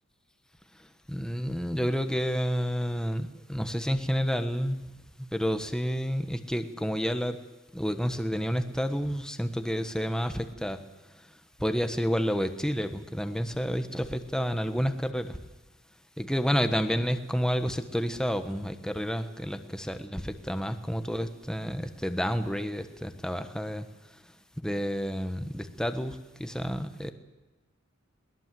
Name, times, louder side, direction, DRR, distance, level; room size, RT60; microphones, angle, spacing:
voice 1, 1.1-4.8 5.2-7.4 7.7-10.8 11.6-15.4 16.2-23.9 24.6-27.1, equal, 5° left, 8 dB, 1.4 m, -30 dB
22.0 x 20.0 x 7.8 m, 1.1 s
head